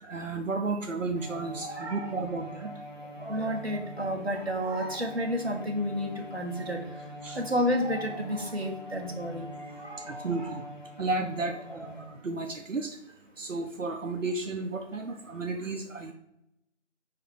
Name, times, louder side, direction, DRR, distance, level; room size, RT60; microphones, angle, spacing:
voice 1, 0.0-2.7 7.2-7.4 9.6-9.7 10.1-10.6 11.0-11.6 11.8-13.0 13.4-16.1, right 3 dB, 85° right, 5 dB, 0.8 m, -33 dB
Bowed string instrument, 1.1-12.4, equal, 40° right, 1.0 m, -44 dB
voice 2, 1.6-2.2 3.2-6.8 7.3-9.5 9.8-10.6, equal, 55° right, 1 dB, 1.3 m, -31 dB
4.8 x 4.6 x 4.6 m, 0.85 s
figure-of-eight pair, 175°, 37 cm